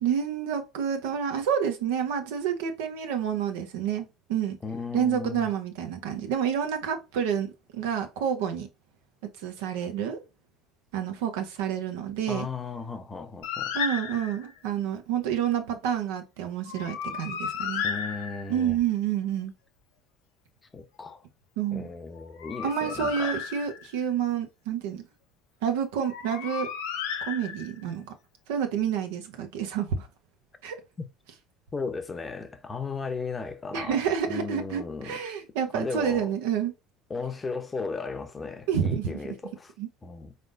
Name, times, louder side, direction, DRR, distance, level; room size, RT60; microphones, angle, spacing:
voice 1, 0.0-4.6 4.9-7.5 7.7-8.7 9.4-10.2 10.9-12.5 13.7-17.8 18.5-19.5 21.6-21.9 22.6-25.0 25.6-26.7 27.3-28.1 28.5-30.1 30.6-30.7 33.7-36.7 38.7-39.1 39.8-39.9, right 8 dB, 70° right, 0.8 m, -29 dB
voice 2, 4.6-5.5 12.3-13.7 17.8-18.8 20.7-21.2 21.7-23.4 31.0-31.1 31.7-34.0 34.3-35.2 35.7-36.3 37.1-39.7 40.0-40.3, left 4 dB, 25° left, 0.7 m, -35 dB
Bird, 13.4-14.6 16.7-18.7 22.2-24.0 26.0-27.9, left 7 dB, 70° left, 0.7 m, -34 dB
4.0 x 3.4 x 2.6 m
hypercardioid pair, 70°, 0 cm